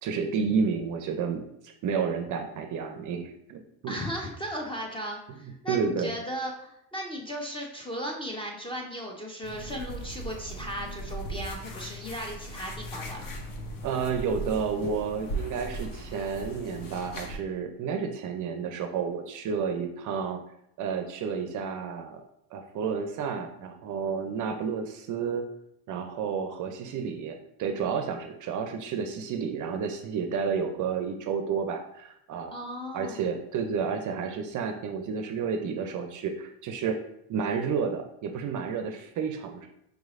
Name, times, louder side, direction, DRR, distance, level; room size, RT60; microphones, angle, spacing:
voice 1, 0.0-4.0 5.7-6.1 13.8-20.4 20.8-22.2 22.5-25.4 25.9-32.5 32.9-37.0 37.3-39.7, right 6 dB, 40° right, 6 dB, 0.5 m, -31 dB
voice 2, 3.9-13.4 32.5-33.2, equal, 10° left, -1 dB, 0.5 m, -36 dB
sound 1, 9.4-17.4, right 1 dB, 45° left, 0.8 m, -38 dB
4.9 x 3.1 x 2.4 m, 0.78 s
supercardioid pair, 100°, 47 cm